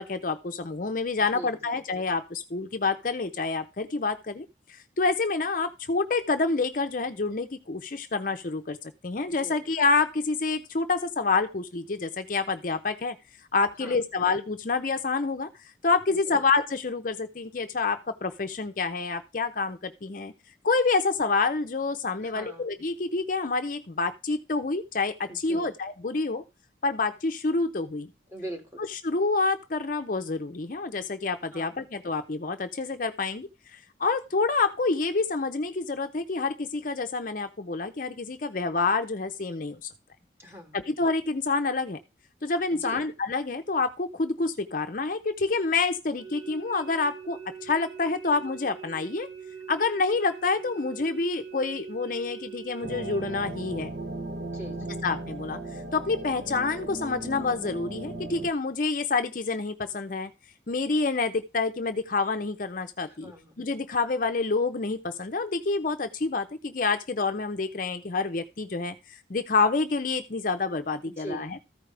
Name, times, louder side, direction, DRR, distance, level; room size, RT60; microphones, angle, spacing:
voice 1, 0.0-13.2 13.5-15.5 15.8-20.3 20.6-26.4 26.8-28.1 28.9-39.9 40.7-42.0 42.4-49.3 49.7-53.9 55.0-55.6 55.9-60.3 60.7-63.3 63.6-71.6, left 4 dB, 45° left, 8 dB, 0.6 m, -28 dB
voice 2, 1.3-1.8 9.4-9.6 13.8-14.0 16.3-16.4 22.2-22.7 25.5-25.7 28.3-28.8 31.5-31.8 40.4-40.8 42.8-43.0 54.5-55.0 63.1-63.6 71.2-71.5, right 1 dB, 15° right, 1 dB, 2.2 m, -41 dB
sound 1, 46.2-53.4, right 7 dB, 80° right, 3.6 m, -43 dB
sound 2, 52.8-58.5, right 2 dB, 50° right, 0.9 m, -37 dB
14.0 x 5.0 x 3.3 m, 0.26 s
head